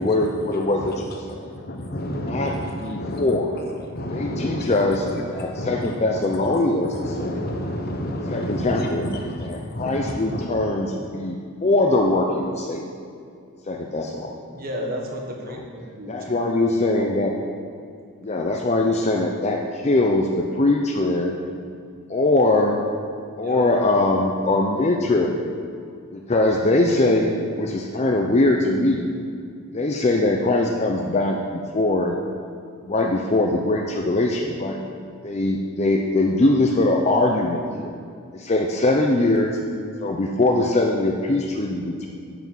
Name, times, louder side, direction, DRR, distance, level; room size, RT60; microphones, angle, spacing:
voice 1, 0.0-1.5 2.2-3.5 4.1-7.5 8.3-12.8 13.7-14.3 15.5-15.6 16.1-17.3 18.2-21.4 22.1-22.8 23.4-25.4 26.1-29.1 29.7-32.2 32.9-34.8 35.2-37.9 38.3-39.6 40.0-42.1, left 2 dB, 30° left, 1 dB, 0.6 m, -22 dB
voice 2, 1.2-3.3 3.5-3.6 3.9-5.9 6.5-10.5, equal, 45° left, 2 dB, 1.0 m, -30 dB
voice 3, 14.5-16.2 16.6-16.7 16.9-17.1 23.4-23.7 26.8-27.0, equal, 45° right, 0 dB, 1.5 m, -33 dB
9.2 x 6.1 x 7.2 m, 2.4 s
head